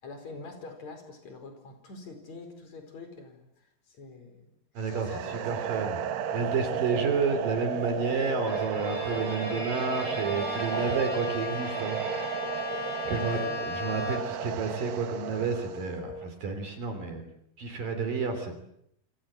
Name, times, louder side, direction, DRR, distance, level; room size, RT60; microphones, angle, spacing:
voice 1, 0.0-3.5 3.9-4.5 4.9-5.4 6.9-7.1 9.1-9.7 13.1-13.7, left 3 dB, 45° left, 6 dB, 5.8 m, -44 dB
voice 2, 4.7-6.0 6.3-12.0 13.1-17.2 17.6-18.6, right 4 dB, 60° right, 7 dB, 4.7 m, -30 dB
sound 1, 4.8-15.9, right 9 dB, 90° right, 3.5 m, -34 dB
sound 2, 6.2-16.2, left 3 dB, 75° left, 6.9 m, -42 dB
Bowed string instrument, 8.4-14.5, left 2 dB, 20° left, 7.9 m, -37 dB
27.5 x 26.0 x 7.8 m, 0.75 s
omnidirectional pair, 4.6 m